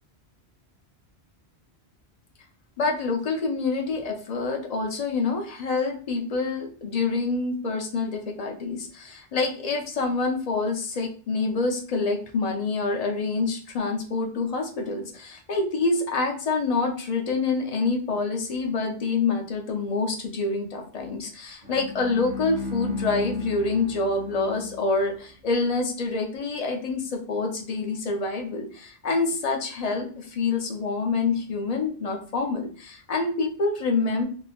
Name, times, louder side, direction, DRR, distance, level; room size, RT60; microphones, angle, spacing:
voice 1, 2.8-34.2, left 3 dB, 50° left, 2 dB, 0.5 m, -27 dB
Bowed string instrument, 21.6-25.2, left 3 dB, 50° right, 1.1 m, -35 dB
3.4 x 2.7 x 2.3 m, 0.42 s
omnidirectional pair, 1.1 m